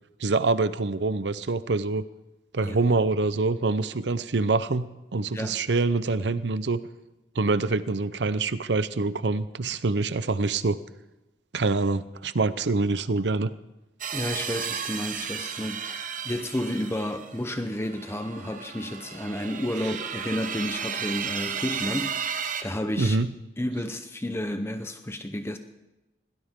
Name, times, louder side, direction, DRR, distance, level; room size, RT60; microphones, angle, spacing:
voice 1, 0.2-2.0 2.5-4.9 5.1-6.8 7.4-10.8 11.5-13.5 23.0-23.3, right 3 dB, 80° right, 14 dB, 0.7 m, -25 dB
voice 2, 2.6-2.9 5.3-5.6 14.1-22.3 22.6-23.2 23.6-25.6, left 1 dB, 15° left, 8 dB, 0.8 m, -31 dB
sound 1, 14.0-22.6, right 7 dB, 50° right, 1.0 m, -34 dB
21.5 x 18.0 x 3.7 m, 1.0 s
head